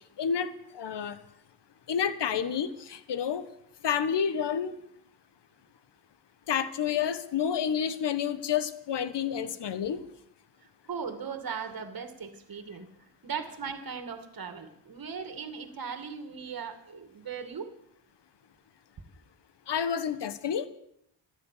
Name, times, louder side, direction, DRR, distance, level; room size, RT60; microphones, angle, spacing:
voice 1, 0.2-1.2 1.9-3.4 3.8-4.8 6.5-10.0 19.7-20.7, left 8 dB, 65° left, 13 dB, 1.4 m, -29 dB
voice 2, 10.9-17.7, right 6 dB, 50° right, 9 dB, 2.3 m, -38 dB
14.0 x 12.0 x 8.6 m, 0.73 s
cardioid pair, 100°, 45 cm